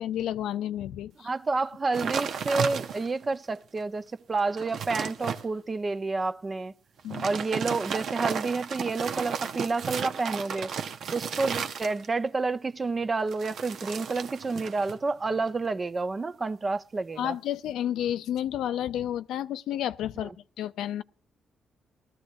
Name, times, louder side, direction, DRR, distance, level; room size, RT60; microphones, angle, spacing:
voice 1, 0.0-1.3 7.0-7.3 17.2-20.3 20.6-21.0, left 11 dB, 85° left, 0.5 m, -31 dB
voice 2, 1.2-6.7 7.2-10.7 11.1-17.4 20.2-20.3, right 3 dB, 35° right, 0.7 m, -29 dB
sound 1, 1.9-3.2 3.8-3.9 4.3-5.4 7.0-12.3 13.3-15.0 15.3-15.7, right 7 dB, 70° right, 0.7 m, -33 dB
19.5 x 13.5 x 2.5 m
cardioid pair, 70°, 0 cm